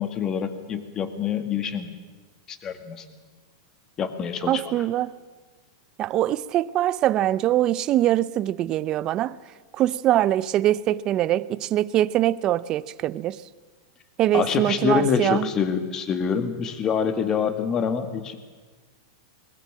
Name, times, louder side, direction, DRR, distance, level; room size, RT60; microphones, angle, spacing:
voice 1, 0.0-2.0 2.5-3.0 4.0-4.6 14.3-18.4, left 7 dB, 25° left, 1.9 m, -26 dB
voice 2, 4.5-5.1 6.0-9.4 9.7-13.4 14.2-15.5, right 13 dB, 30° right, 0.6 m, -23 dB
21.5 x 20.0 x 7.5 m
supercardioid pair, 135°, 2 cm